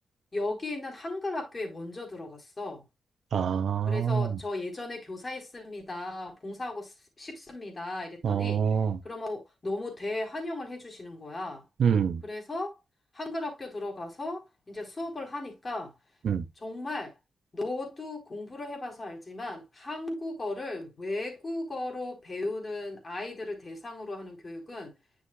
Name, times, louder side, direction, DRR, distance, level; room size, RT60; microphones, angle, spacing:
voice 1, 0.3-2.8 3.9-8.6 9.0-11.6 12.2-12.8 13.1-15.9 16.6-17.1 17.5-24.9, left 2 dB, 35° left, 4.1 m, -36 dB
voice 2, 3.3-4.4 8.2-9.0 11.8-12.2 16.2-16.4, right 7 dB, 75° right, 0.9 m, -26 dB
9.9 x 6.5 x 2.3 m
cardioid pair, 75°, 0 cm